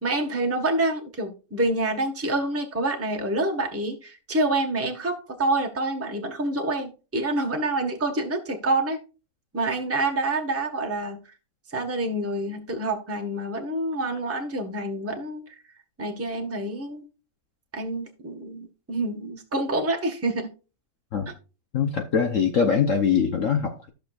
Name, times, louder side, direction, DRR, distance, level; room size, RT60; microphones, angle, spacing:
voice 1, 0.0-9.0 9.5-11.3 11.7-15.6 16.0-17.0 17.7-20.5, right 2 dB, 10° right, 1.3 m, -27 dB
voice 2, 21.7-23.9, left 6 dB, 55° left, 1.1 m, -23 dB
14.0 x 6.4 x 2.4 m
omnidirectional pair, 1.9 m